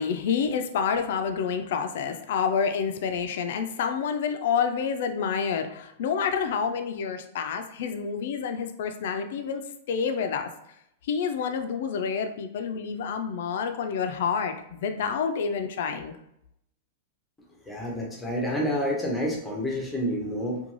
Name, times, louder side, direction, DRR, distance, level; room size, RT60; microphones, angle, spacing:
voice 1, 0.0-9.6 9.9-10.5 11.0-16.1, left 6 dB, 65° left, 6 dB, 0.3 m, -28 dB
voice 2, 17.7-20.6, equal, 5° left, -2 dB, 0.6 m, -28 dB
2.5 x 2.2 x 3.0 m, 0.77 s
supercardioid pair, 155°, 0 cm